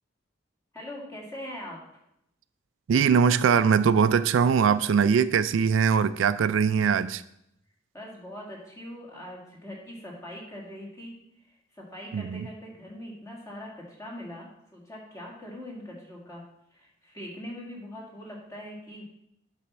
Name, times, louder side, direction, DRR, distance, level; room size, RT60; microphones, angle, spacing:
voice 1, 0.7-1.8 7.9-11.1 11.4-16.4 16.7-19.0, left 1 dB, 15° left, -3 dB, 2.0 m, -42 dB
voice 2, 2.9-7.2 12.1-12.5, right 6 dB, 85° right, 14 dB, 0.3 m, -22 dB
8.5 x 4.2 x 6.0 m, 0.80 s
head